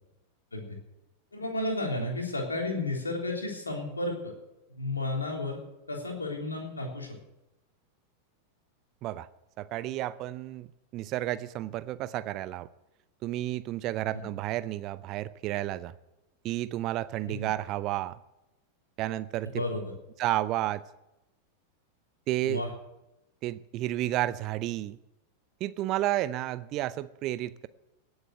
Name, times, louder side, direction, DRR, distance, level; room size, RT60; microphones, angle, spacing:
voice 1, 1.3-4.3 4.8-5.6 5.9-7.2 14.1-14.3 17.3-17.5 19.5-19.9 22.4-22.7, left 2 dB, 80° left, 1 dB, 3.5 m, -32 dB
voice 2, 9.6-10.7 10.9-12.7 13.2-15.9 16.4-18.2 19.0-19.6 20.2-20.8 22.3-22.6 23.4-25.0 25.6-27.7, right 15 dB, 40° right, 16 dB, 0.6 m, -31 dB
18.0 x 8.0 x 7.8 m, 0.93 s
figure-of-eight pair, 90°, 0 cm